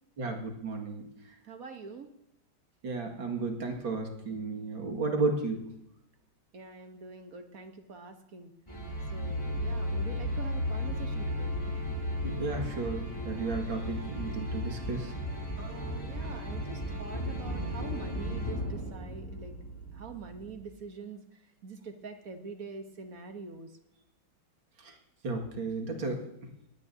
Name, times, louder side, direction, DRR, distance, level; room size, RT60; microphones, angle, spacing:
voice 1, 0.2-1.1 2.8-5.6 12.2-15.1 24.8-24.9 25.2-26.2, right 3 dB, 75° right, 2 dB, 2.8 m, -33 dB
voice 2, 1.4-2.1 6.5-8.5 9.1-11.6 15.6-19.5 19.9-23.7, right 4 dB, 50° right, 6 dB, 1.3 m, -45 dB
sound 1, 8.7-20.6, left 1 dB, 15° left, 4.7 m, -35 dB
20.0 x 16.0 x 2.8 m, 0.80 s
omnidirectional pair, 2.2 m